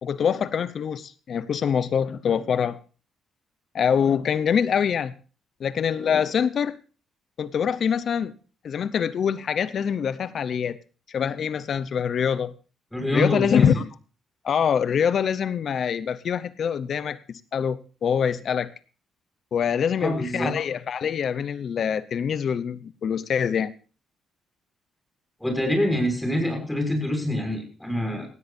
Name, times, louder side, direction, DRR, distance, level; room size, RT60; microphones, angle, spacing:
voice 1, 0.0-2.8 3.7-5.1 5.6-6.8 7.4-8.3 8.6-10.8 11.1-12.5 13.1-13.9 14.4-18.7 19.5-23.7, left 7 dB, 55° left, 16 dB, 0.7 m, -24 dB
voice 2, 12.9-13.8 20.0-20.5 25.4-28.3, left 1 dB, 5° left, 2 dB, 6.4 m, -25 dB
17.5 x 16.5 x 2.6 m, 0.36 s
cardioid pair, 90°, 0 cm